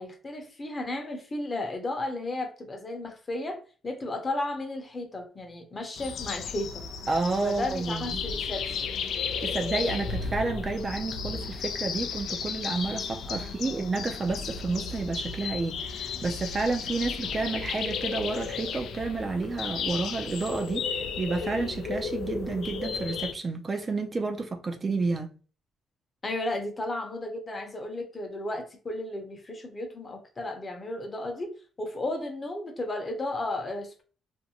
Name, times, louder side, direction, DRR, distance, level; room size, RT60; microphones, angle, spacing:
voice 1, 0.0-6.8 7.4-8.9 13.2-13.5 26.2-31.5 31.8-34.0, left 2 dB, 30° left, 0.7 m, -34 dB
sound 1, 6.0-23.3, left 6 dB, 70° left, 0.3 m, -34 dB
voice 2, 7.1-8.2 9.4-25.3, right 3 dB, 30° right, 0.5 m, -30 dB
2.5 x 2.2 x 2.8 m
cardioid pair, 90°, 0 cm